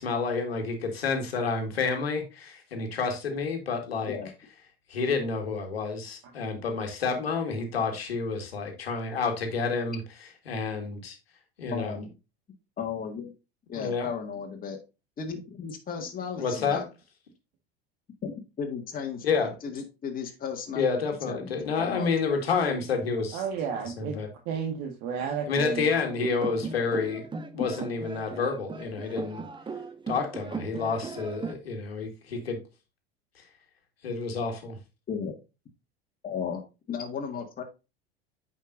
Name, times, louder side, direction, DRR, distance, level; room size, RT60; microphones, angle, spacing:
voice 1, 0.0-4.2 4.9-10.0 10.5-11.2 11.6-12.0 13.8-14.1 16.4-16.8 19.2-19.5 20.8-23.4 24.0-24.3 25.5-27.3 27.5-29.4 30.1-32.6 34.0-34.8, left 4 dB, 85° left, 1.9 m, -29 dB
voice 2, 11.7-12.1 12.8-13.3 13.7-14.8 15.2-16.9 18.2-20.9 21.3-22.1 35.1-35.4 36.2-36.6 36.9-37.6, left 6 dB, 30° left, 1.8 m, -35 dB
voice 3, 23.3-24.2 24.4-25.9, right 7 dB, 55° right, 1.6 m, -32 dB
sound 1, 26.0-31.5, right 4 dB, 15° right, 0.9 m, -38 dB
9.0 x 5.6 x 2.6 m
hypercardioid pair, 80°, 30 cm